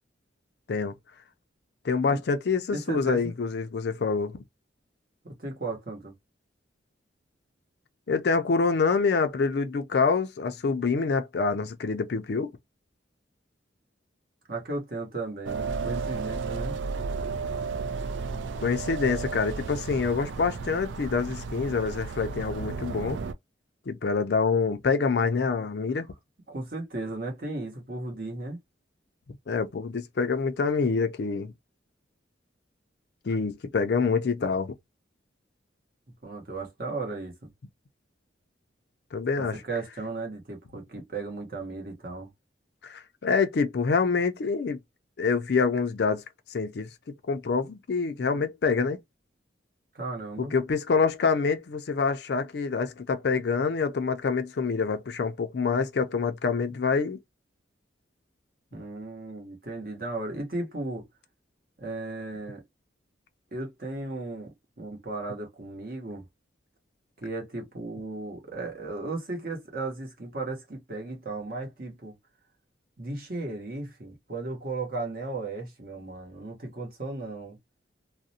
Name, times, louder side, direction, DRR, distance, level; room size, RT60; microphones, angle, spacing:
voice 1, 1.8-4.4 8.1-12.5 18.6-23.2 23.9-26.1 29.5-31.5 33.3-34.7 39.1-39.5 42.8-44.8 45.2-46.2 46.5-46.9 47.3-49.0 50.4-57.2, left 4 dB, 60° left, 0.4 m, -26 dB
voice 2, 2.7-3.3 5.2-6.1 14.5-16.8 26.5-28.6 36.2-37.5 39.5-42.3 49.9-50.5 58.7-61.1 61.8-62.6 63.5-66.2 67.2-72.1 73.0-77.6, right 2 dB, 50° right, 1.0 m, -35 dB
sound 1, 15.5-23.3, right 4 dB, 75° right, 0.3 m, -33 dB
2.4 x 2.1 x 2.7 m
head